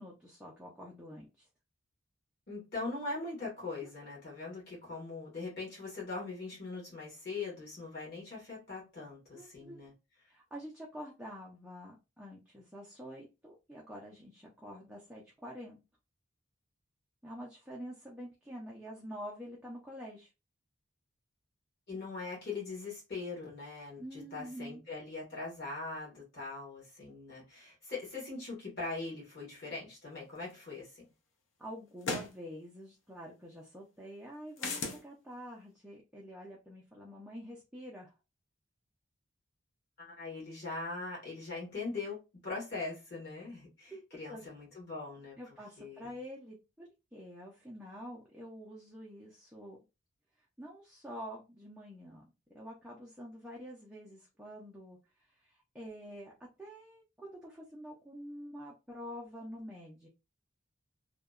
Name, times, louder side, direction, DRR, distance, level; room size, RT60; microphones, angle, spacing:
voice 1, 0.0-1.5 3.8-3.9 9.3-9.8 10.3-15.8 17.2-20.3 24.0-24.8 31.6-38.1 43.9-44.0 44.3-44.5 45.4-49.8 50.6-52.2 52.5-60.1, equal, 5° right, 0.4 m, -47 dB
voice 2, 2.5-9.9 21.9-31.1 40.0-45.4 45.8-46.1, left 3 dB, 50° left, 1.2 m, -41 dB
sound 1, 30.6-30.7 32.0-32.3 34.6-35.0, left 3 dB, 70° left, 0.6 m, -35 dB
2.7 x 2.1 x 2.3 m
head